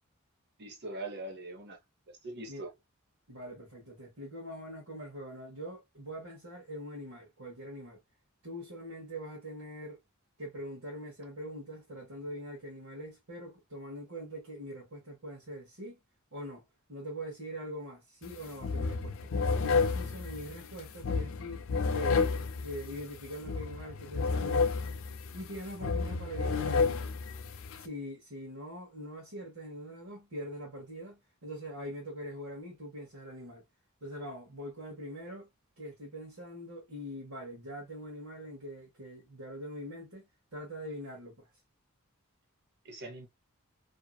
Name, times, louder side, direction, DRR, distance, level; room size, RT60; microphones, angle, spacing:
voice 1, 0.6-1.8 2.1-2.7 42.8-43.3, right 2 dB, 50° right, 0.9 m, -42 dB
voice 2, 3.3-8.0 8.4-10.0 10.4-16.0 16.3-16.6 16.9-19.3 19.6-24.7 25.3-27.0 27.7-33.6 34.0-35.5 35.8-40.2 40.5-41.5, equal, 75° right, 1.2 m, -43 dB
sound 1, 18.2-18.4 18.6-27.9, left 4 dB, 65° left, 0.4 m, -31 dB
2.7 x 2.7 x 2.2 m
head